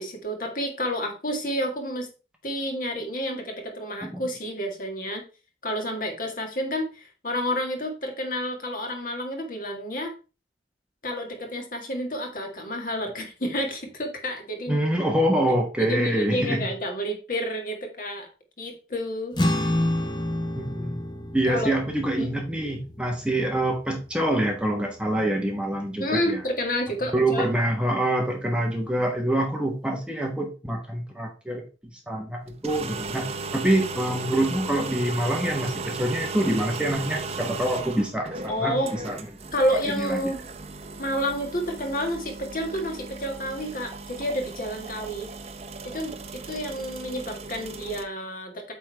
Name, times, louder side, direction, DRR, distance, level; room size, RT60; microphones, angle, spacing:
voice 1, 0.0-2.1 2.4-5.2 5.6-10.1 11.0-14.8 15.8-18.3 18.6-19.7 21.4-21.7 22.2-22.3 26.0-27.5 38.5-38.9 39.5-40.4 41.0-45.3 45.8-48.7, equal, 50° left, 3 dB, 1.8 m, -30 dB
voice 2, 14.7-16.7 20.6-21.0 21.3-26.4 27.1-31.6 32.1-39.2 39.7-40.2, right 1 dB, 5° right, 1 dB, 1.2 m, -26 dB
sound 1, 19.3-26.0, left 1 dB, 25° left, 0.8 m, -30 dB
sound 2, 32.5-48.0, right 3 dB, 35° right, 0.7 m, -36 dB
8.4 x 3.8 x 4.5 m, 0.32 s
head